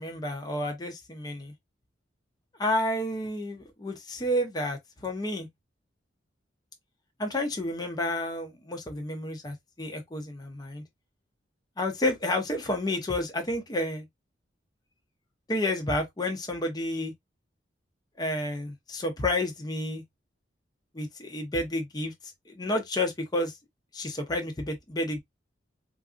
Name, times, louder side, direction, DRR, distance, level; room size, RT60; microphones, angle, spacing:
voice 1, 0.0-1.5 2.6-5.5 7.2-10.8 11.8-14.0 15.5-17.1 18.2-20.0 20.9-22.1 22.5-23.6 23.9-25.2, left 1 dB, 20° left, 0.6 m, -30 dB
3.8 x 2.5 x 2.5 m
head